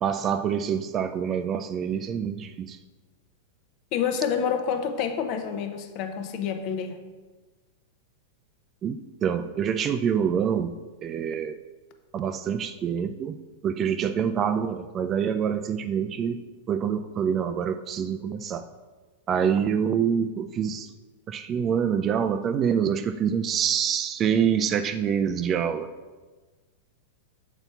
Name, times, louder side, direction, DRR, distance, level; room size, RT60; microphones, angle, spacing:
voice 1, 0.0-2.8 8.8-10.7 11.0-11.6 12.1-13.4 13.6-16.4 16.7-18.7 19.3-20.9 21.3-25.9, right 7 dB, 30° right, 9 dB, 0.3 m, -26 dB
voice 2, 3.9-7.0, left 7 dB, 50° left, 6 dB, 0.7 m, -28 dB
6.9 x 4.1 x 4.4 m, 1.3 s
hypercardioid pair, 105°, 0 cm